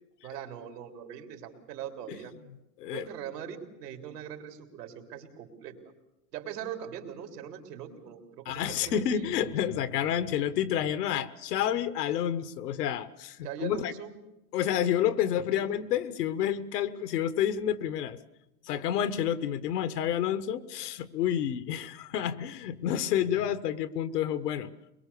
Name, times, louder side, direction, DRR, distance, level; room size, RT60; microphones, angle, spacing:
voice 1, 0.2-2.3 2.8-5.8 6.3-9.6 13.4-14.2 15.5-15.7, right 9 dB, 85° right, 4 dB, 3.5 m, -41 dB
voice 2, 8.4-13.9 14.5-18.2 18.6-24.7, left 10 dB, 80° left, 13 dB, 1.5 m, -29 dB
23.0 x 22.0 x 6.9 m, 0.94 s
supercardioid pair, 140°, 47 cm